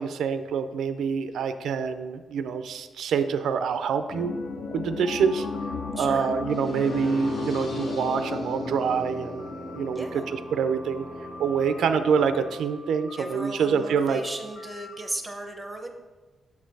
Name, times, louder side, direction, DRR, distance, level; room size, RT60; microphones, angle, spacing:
voice 1, 0.0-4.3 4.7-5.5 5.9-11.0 11.4-14.2, right 6 dB, 90° right, 10 dB, 0.4 m, -26 dB
sound 1, 4.1-11.1 11.4-11.5, left 3 dB, 50° left, 0.5 m, -35 dB
sound 2, 5.1-15.1, left 2 dB, 90° left, 0.8 m, -47 dB
voice 2, 6.0-6.3 9.9-10.2 13.2-15.9, right 1 dB, 10° right, 4 dB, 0.7 m, -35 dB
sound 3, 6.5-12.5, equal, 70° left, 2.0 m, -38 dB
7.1 x 4.4 x 4.6 m, 1.3 s
wide cardioid pair, 165°, 0 cm